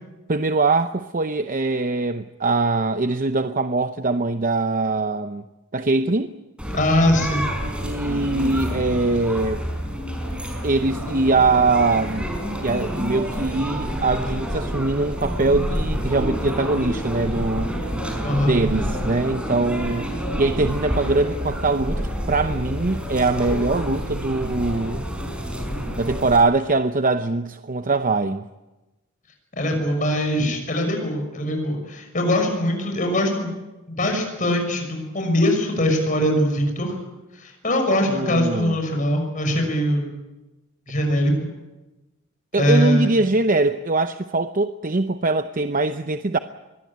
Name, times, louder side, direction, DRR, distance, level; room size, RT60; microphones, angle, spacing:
voice 1, 0.3-5.4 5.7-6.3 7.6-9.6 10.6-12.3 12.6-17.7 18.4-25.1 26.0-28.4 38.1-38.8 42.5-46.4, right 3 dB, 40° right, 9 dB, 0.8 m, -22 dB
sound 1, 6.6-26.4, equal, 5° right, 5.2 m, -28 dB
voice 2, 6.7-7.5 18.2-18.6 29.5-33.5 33.9-37.0 37.3-40.1 40.9-41.3 42.5-43.1, left 1 dB, 40° left, 3 dB, 6.2 m, -22 dB
24.5 x 20.5 x 8.7 m, 1.1 s
head